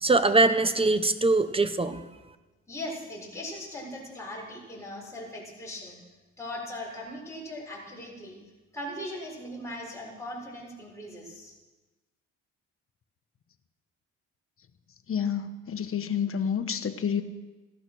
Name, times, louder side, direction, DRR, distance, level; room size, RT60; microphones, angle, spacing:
voice 1, 0.0-2.0, right 3 dB, 20° right, 11 dB, 1.1 m, -22 dB
voice 2, 2.7-6.0 6.4-8.4 8.7-11.5, left 1 dB, 10° left, -5 dB, 6.8 m, -39 dB
voice 3, 15.1-17.2, left 7 dB, 45° left, 9 dB, 1.3 m, -29 dB
16.5 x 12.0 x 6.3 m, 1.2 s
cardioid pair, 90°, 30 cm